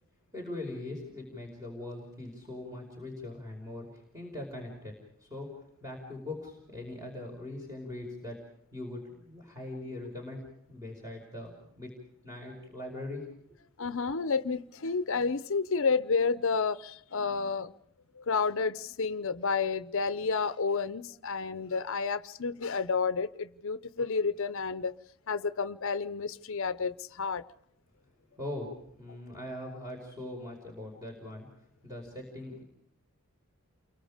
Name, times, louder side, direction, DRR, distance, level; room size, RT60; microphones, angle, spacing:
voice 1, 0.3-4.9 5.2-5.5 5.8-8.4 8.7-11.9 12.2-13.3 28.4-31.5 31.8-32.6, left 1 dB, 15° right, 5.3 m, -41 dB
voice 2, 13.8-17.7 18.2-24.9 25.3-27.4, left 5 dB, 65° left, 0.8 m, -30 dB
29.5 x 23.5 x 5.1 m
head